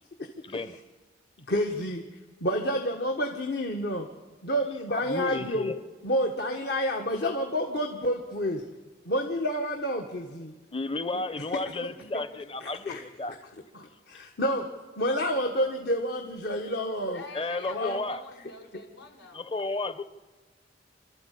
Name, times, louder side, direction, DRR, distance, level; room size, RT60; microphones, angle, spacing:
voice 1, 0.4-0.8 4.9-5.7 10.7-13.4 17.3-18.2 19.3-20.0, left 3 dB, 30° left, 0.9 m, -32 dB
voice 2, 1.5-2.0 2.4-4.1 4.4-5.7 6.0-8.6 9.0-10.5 12.6-13.0 13.7-14.7 15.0-17.2 17.6-18.0, equal, 60° left, 1.6 m, -29 dB
voice 3, 17.1-19.5, left 3 dB, 90° left, 5.2 m, -46 dB
27.5 x 13.0 x 8.5 m
head